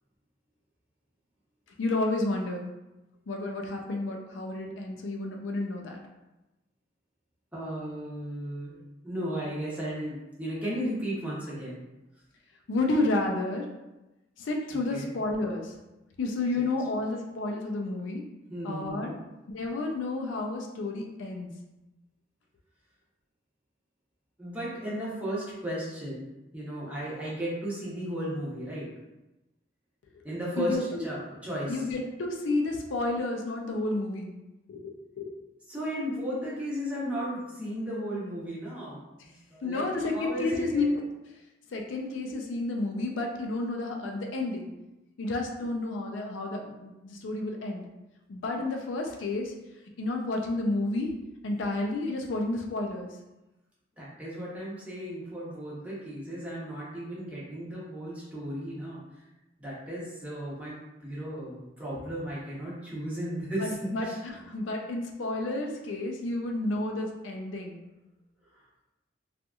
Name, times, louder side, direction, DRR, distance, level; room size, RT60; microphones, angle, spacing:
voice 1, 1.8-2.6 3.3-6.0 12.7-13.7 14.4-15.7 16.2-18.2 18.6-19.1 19.5-21.5 30.6-31.0 31.7-34.3 34.7-35.3 39.6-41.0 41.7-44.7 45.2-47.8 48.3-49.5 50.0-51.1 51.4-53.1 63.6-67.8, left 2 dB, 85° left, 1 dB, 0.4 m, -31 dB
voice 2, 7.5-11.8 14.9-15.1 18.5-19.2 24.4-26.2 26.5-28.9 30.2-31.8 35.7-39.9 40.1-40.8 54.0-59.0 59.6-64.2, equal, 5° right, -7 dB, 0.7 m, -35 dB
2.8 x 2.4 x 2.3 m, 1.0 s
head